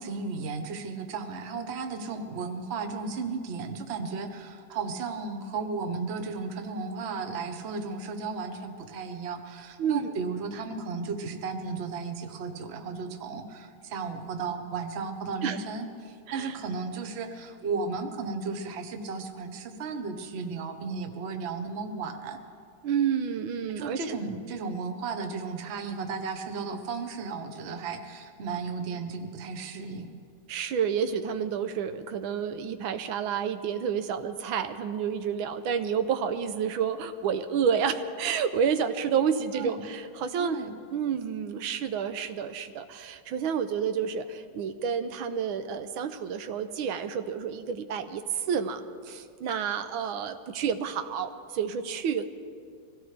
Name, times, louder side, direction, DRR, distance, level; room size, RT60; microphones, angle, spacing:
voice 1, 0.0-22.4 23.8-30.1 39.5-39.8 40.4-40.7, right 4 dB, 40° right, 6 dB, 1.0 m, -34 dB
voice 2, 9.8-10.1 15.4-15.6 16.3-16.5 22.8-24.2 30.5-40.6 40.9-52.3, right 7 dB, 85° right, 9 dB, 1.5 m, -29 dB
24.0 x 16.5 x 3.3 m, 2.2 s
omnidirectional pair, 2.2 m